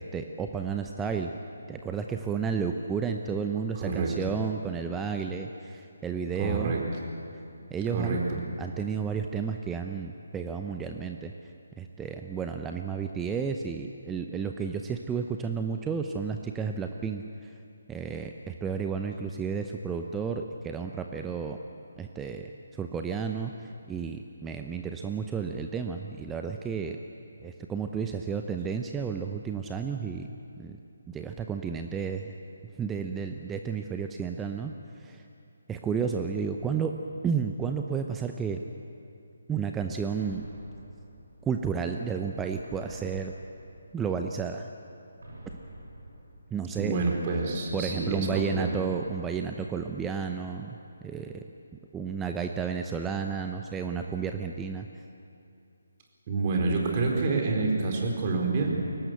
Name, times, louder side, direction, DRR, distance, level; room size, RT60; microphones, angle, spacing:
voice 1, 0.0-1.3 1.7-6.8 7.7-8.2 8.6-11.3 11.8-17.5 17.9-21.6 22.0-27.0 27.4-30.3 30.6-30.8 31.1-32.3 32.8-34.7 35.0-35.2 35.7-37.0 37.2-38.6 39.5-40.4 41.4-43.3 43.9-44.7 46.5-47.0 47.7-50.8 51.0-51.4 51.9-54.9, right 6 dB, 10° right, 4 dB, 0.7 m, -32 dB
voice 2, 3.8-4.1 6.4-6.8 7.9-8.2 46.8-48.8 56.3-58.7, right 3 dB, 30° right, 0 dB, 4.3 m, -28 dB
sound 1, 40.1-41.8 42.6-44.3 45.2-47.0 47.8-49.6, right 1 dB, 70° right, 7.0 m, -47 dB
23.0 x 18.5 x 8.1 m, 2.5 s
figure-of-eight pair, 145°, 0 cm